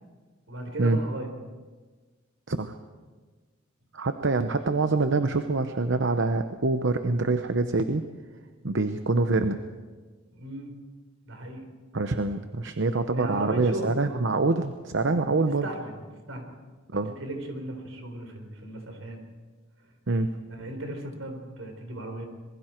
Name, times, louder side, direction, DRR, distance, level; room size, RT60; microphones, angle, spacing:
voice 1, 0.5-1.3 10.3-10.8 11.3-11.7 13.1-14.2 15.6-16.0 16.3-16.5 17.2-19.2 20.5-22.3, right 1 dB, 80° right, 5 dB, 4.1 m, -36 dB
voice 2, 3.9-8.0 8.6-9.6 11.9-15.7 16.9-17.1 20.1-20.3, right 3 dB, 65° right, 8 dB, 0.9 m, -25 dB
26.5 x 21.5 x 4.5 m, 1.4 s
head